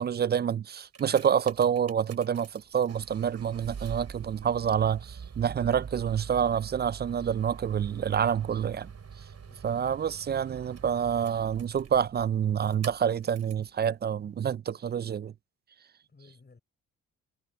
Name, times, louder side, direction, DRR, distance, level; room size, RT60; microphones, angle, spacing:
voice 1, 0.0-8.9 9.6-15.3, right 8 dB, 30° right, 0.4 m, -27 dB
sound 1, 0.7-13.7 14.4-14.5, right 6 dB, 50° right, 6.4 m, -45 dB
voice 2, 9.3-9.9 16.1-16.6, left 4 dB, 30° left, 6.4 m, -58 dB
cardioid pair, 70°, 34 cm